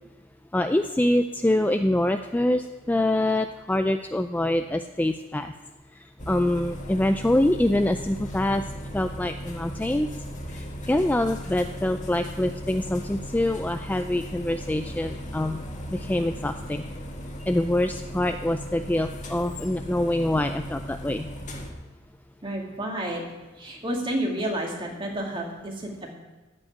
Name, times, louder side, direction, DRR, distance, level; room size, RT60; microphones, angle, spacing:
voice 1, 0.5-5.5 6.3-8.6 8.9-10.1 10.5-15.6 15.9-16.8 17.5-21.3, left 1 dB, 10° left, 7 dB, 0.3 m, -25 dB
sound 1, 6.2-21.7, equal, 40° left, 1.7 m, -37 dB
voice 2, 22.4-23.2 23.6-26.1, right 1 dB, 25° right, -1 dB, 2.2 m, -30 dB
14.0 x 5.5 x 9.5 m, 1.2 s
head